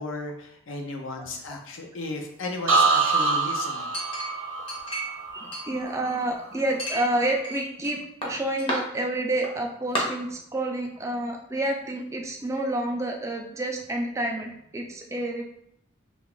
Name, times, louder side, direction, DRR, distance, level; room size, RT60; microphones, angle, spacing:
voice 1, 0.0-3.9, left 2 dB, 75° left, 2 dB, 0.6 m, -35 dB
sound 1, 2.7-6.5 6.9-7.3, right 4 dB, 70° right, 0.7 m, -26 dB
Chink clink, 3.9-5.2 5.5-6.3 6.8-7.9 8.2-8.8 9.4-9.5 9.9-10.0, equal, 25° left, 0.7 m, -32 dB
voice 2, 5.3-15.4, right 1 dB, 15° right, 2 dB, 0.3 m, -29 dB
2.8 x 2.4 x 3.7 m, 0.74 s
head